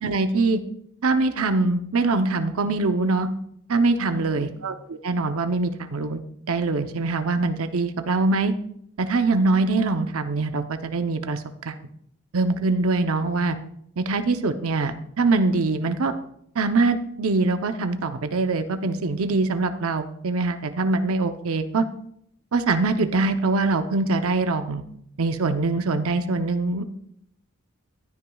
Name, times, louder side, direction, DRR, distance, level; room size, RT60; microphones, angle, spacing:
voice 1, 0.0-0.6 1.0-3.3 3.7-8.5 9.0-11.8 12.3-13.6 14.0-16.1 16.5-21.9 22.5-24.8 25.2-26.8, right 3 dB, 75° right, 8 dB, 0.7 m, -23 dB
15.0 x 9.9 x 2.3 m, 0.71 s
head